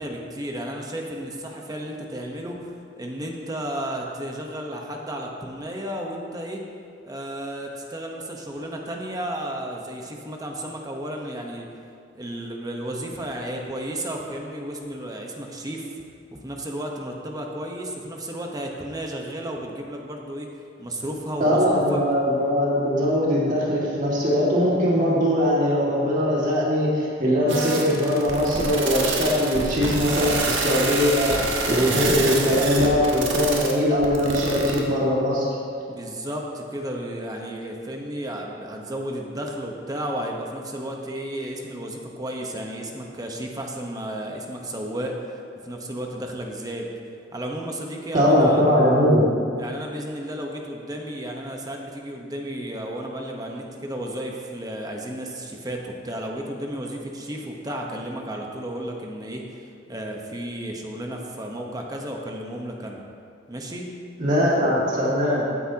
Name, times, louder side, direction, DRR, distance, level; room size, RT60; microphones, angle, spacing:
voice 1, 0.0-6.6 7.0-11.7 12.1-16.0 16.3-20.5 20.8-22.0 35.9-46.9 47.3-48.6 49.6-63.0 63.5-63.9, right 1 dB, 20° right, 1 dB, 1.1 m, -33 dB
voice 2, 21.4-31.4 31.7-35.5 48.1-49.2 64.2-65.5, equal, 45° right, -6 dB, 2.2 m, -21 dB
sound 1, 27.5-34.8, right 3 dB, 85° right, 1.4 m, -27 dB
14.5 x 9.6 x 2.9 m, 2.4 s
head